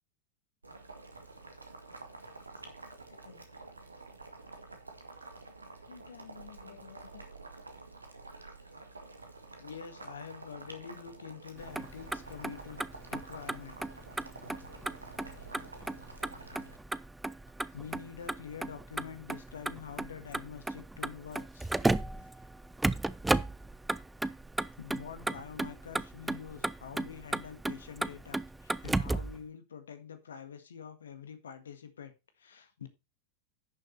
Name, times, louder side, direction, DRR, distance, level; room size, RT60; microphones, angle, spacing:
Boiling, 0.6-16.8, right 3 dB, 80° right, 1.8 m, -49 dB
voice 1, 2.2-3.5 5.9-7.2 9.6-12.8 13.1-13.8 15.3-15.5 17.7-21.7 22.2-22.5 24.8-32.9, left 7 dB, 65° left, 1.7 m, -47 dB
Motor vehicle (road), 11.6-29.4, right 2 dB, 5° right, 0.5 m, -35 dB
11.0 x 6.7 x 4.2 m
figure-of-eight pair, 90°, 0 cm